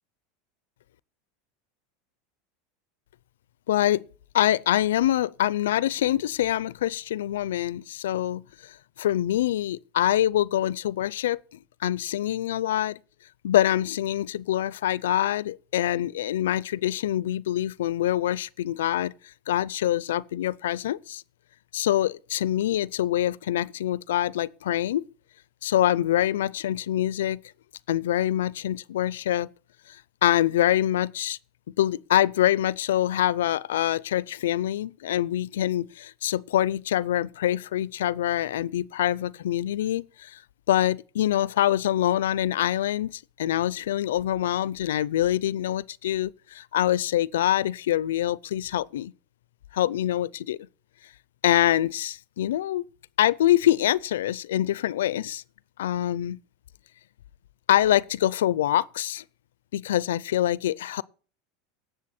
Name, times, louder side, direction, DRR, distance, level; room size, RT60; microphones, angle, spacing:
voice 1, 3.7-4.0 4.3-11.4 11.8-13.0 13.4-21.2 21.7-25.1 25.6-27.4 27.9-29.5 29.9-31.4 31.8-40.4 40.7-49.1 49.7-50.6 51.4-52.8 53.2-55.4 55.8-56.4 57.7-59.2 59.7-61.0, left 12 dB, 90° left, 0.4 m, -25 dB
17.5 x 6.8 x 4.3 m
supercardioid pair, 125°, 0 cm